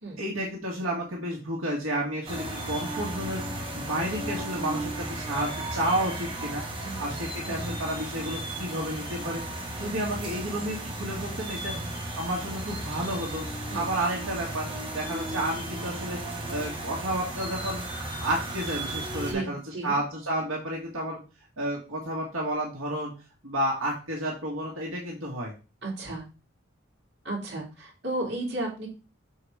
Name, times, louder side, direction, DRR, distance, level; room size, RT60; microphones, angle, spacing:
voice 1, 0.2-6.6 7.0-9.4 9.8-11.8 12.2-13.5 13.7-14.7 14.9-16.2 16.5-19.6 19.8-21.2 21.6-23.1 23.4-25.5, right 1 dB, 80° right, -2 dB, 1.9 m, -31 dB
sound 1, 2.3-19.3, right 1 dB, 25° right, 2.0 m, -35 dB
voice 2, 6.8-7.8 9.8-10.0 11.7-11.9 13.7-13.9 19.3-20.0 25.8-26.2 27.2-28.9, right 2 dB, 55° right, -2 dB, 3.0 m, -34 dB
6.5 x 4.9 x 4.9 m, 0.32 s
head